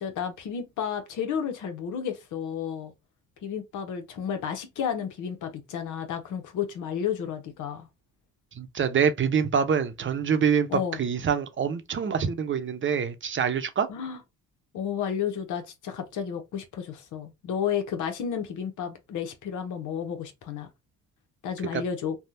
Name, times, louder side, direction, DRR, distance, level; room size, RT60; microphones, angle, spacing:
voice 1, 0.0-2.9 3.4-7.9 10.7-11.0 13.9-14.2 14.7-20.7 21.4-22.2, left 8 dB, 80° left, 1.0 m, -32 dB
voice 2, 8.5-13.9 21.7-21.8, right 7 dB, 40° right, 0.7 m, -25 dB
3.4 x 2.3 x 2.8 m
cardioid pair, 90°, 30 cm